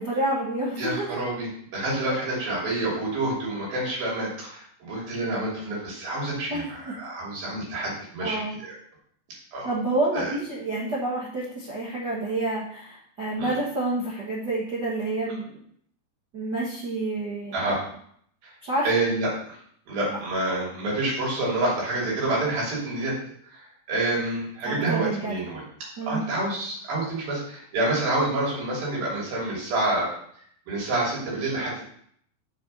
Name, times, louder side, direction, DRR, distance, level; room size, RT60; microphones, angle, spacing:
voice 1, 0.0-1.2 6.5-6.7 8.2-8.6 9.6-15.6 16.3-17.6 18.6-18.9 24.6-25.4 26.0-26.2, right 2 dB, 50° right, -6 dB, 1.3 m, -28 dB
voice 2, 0.8-8.7 9.5-9.7 10.1-10.3 13.4-13.5 17.5-17.8 18.4-18.5 18.8-19.6 19.9-23.1 23.4-25.6 26.1-30.1 30.7-31.8, right 2 dB, 70° right, -5 dB, 4.9 m, -28 dB
7.1 x 5.6 x 5.5 m, 0.65 s
omnidirectional pair, 4.3 m